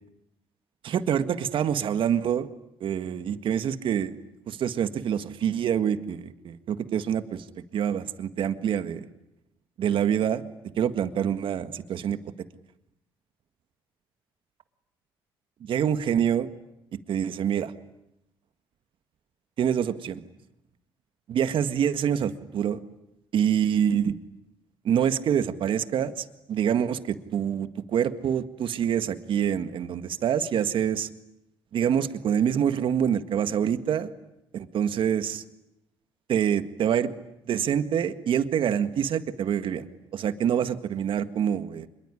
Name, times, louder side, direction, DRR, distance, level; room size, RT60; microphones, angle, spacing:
voice 1, 0.8-2.5 2.8-4.2 4.5-7.4 7.7-9.1 9.8-10.4 10.8-12.2 15.6-16.5 17.1-17.7 19.6-20.2 21.3-22.8 23.3-24.1 24.9-31.1 31.7-34.1 34.5-35.4 36.3-37.1 37.5-39.9 40.1-41.9, right 8 dB, 65° right, 10 dB, 1.8 m, -26 dB
26.0 x 22.5 x 9.9 m, 0.86 s
supercardioid pair, 70°, 10 cm